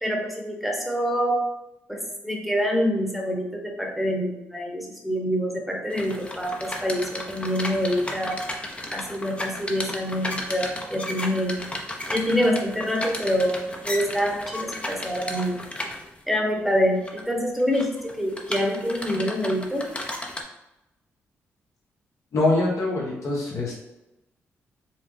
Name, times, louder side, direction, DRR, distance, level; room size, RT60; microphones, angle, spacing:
voice 1, 0.0-1.4 1.9-8.4 8.9-11.6 12.1-15.6 16.3-19.9, equal, ahead, 0 dB, 1.0 m, -26 dB
sound 1, 5.9-16.2 16.8-17.2 17.6-20.4, left 1 dB, 20° left, 0.7 m, -34 dB
voice 2, 22.3-24.0, left 2 dB, 60° left, -2 dB, 1.2 m, -24 dB
4.5 x 2.3 x 3.2 m, 0.95 s
supercardioid pair, 50°, 6 cm